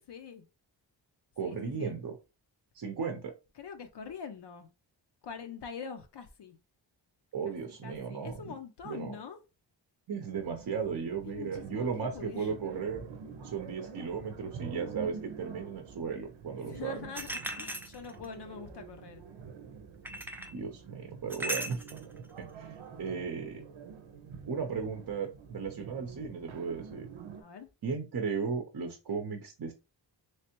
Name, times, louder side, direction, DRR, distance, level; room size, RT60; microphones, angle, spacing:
voice 1, 0.1-0.4 1.4-2.0 3.6-4.7 5.2-6.6 7.4-9.4 11.2-12.5 16.5-19.2 22.8-23.3 27.4-27.7, left 6 dB, 60° left, 0.6 m, -44 dB
voice 2, 1.4-2.2 2.7-3.3 7.3-8.5 8.8-9.1 10.1-13.0 13.4-17.0 20.5-21.8 22.4-23.6 24.5-27.1 27.8-29.7, right 6 dB, 50° right, 0.7 m, -36 dB
sound 1, 10.3-27.4, right 6 dB, 90° right, 0.8 m, -47 dB
sound 2, 17.1-18.3 20.0-20.6 21.3-22.0, right 1 dB, 5° right, 0.4 m, -37 dB
3.3 x 3.2 x 2.9 m
wide cardioid pair, 140°, 46 cm